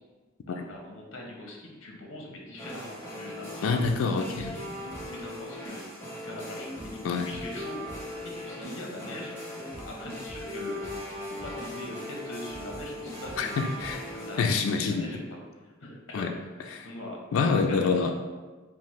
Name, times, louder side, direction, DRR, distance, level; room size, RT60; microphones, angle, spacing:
voice 1, 0.5-7.8 8.2-9.3 9.7-10.8 11.3-13.6 14.1-14.4 14.9-16.3 16.8-17.2 17.7-18.1, left 1 dB, 65° left, -1 dB, 0.8 m, -42 dB
sound 1, 2.6-14.4, equal, 15° left, 0.9 m, -39 dB
voice 2, 3.6-4.6 7.0-7.3 13.4-14.0 14.4-15.1 16.1-16.3 16.7-16.9 17.3-18.1, left 4 dB, 85° left, 4 dB, 0.3 m, -26 dB
5.6 x 2.0 x 3.0 m, 1.3 s
head